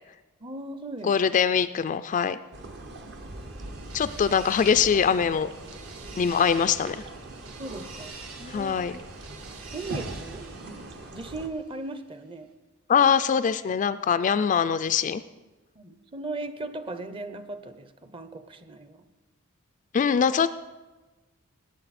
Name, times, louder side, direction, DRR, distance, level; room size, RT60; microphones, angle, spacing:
voice 1, 0.4-1.1 2.4-2.5 7.6-8.8 9.7-10.5 11.1-12.5 13.0-13.5 15.8-19.0, right 2 dB, 25° right, 11 dB, 0.6 m, -38 dB
voice 2, 1.0-2.4 3.9-5.5 6.2-7.0 8.5-8.9 12.9-15.2 19.9-20.5, left 7 dB, 35° left, 12 dB, 0.3 m, -23 dB
sound 1, 2.5-11.5, right 1 dB, 55° right, 1.0 m, -41 dB
sound 2, 2.7-11.8, right 4 dB, 70° right, 1.7 m, -47 dB
18.5 x 8.4 x 4.2 m, 1.2 s
head